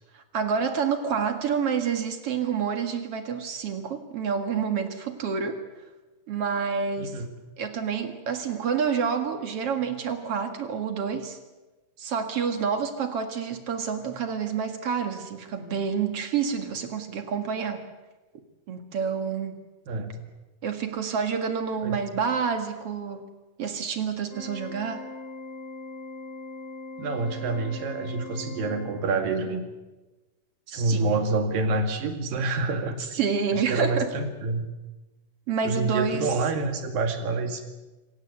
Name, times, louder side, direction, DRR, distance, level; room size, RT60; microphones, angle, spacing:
voice 1, 0.1-5.6 6.3-7.2 7.6-11.4 12.0-17.8 18.7-19.6 20.6-23.3 23.6-25.1 30.7-31.1 33.1-34.1 35.5-36.3, right 6 dB, 50° right, 7 dB, 2.3 m, -28 dB
voice 2, 7.0-7.3 19.9-20.2 21.8-22.0 27.0-29.6 30.7-33.0 33.5-34.7 35.6-37.6, right 3 dB, 70° right, 7 dB, 3.7 m, -27 dB
Organ, 24.3-29.4, left 3 dB, 45° left, 6.3 m, -40 dB
27.0 x 17.0 x 8.2 m, 1.1 s
omnidirectional pair, 4.2 m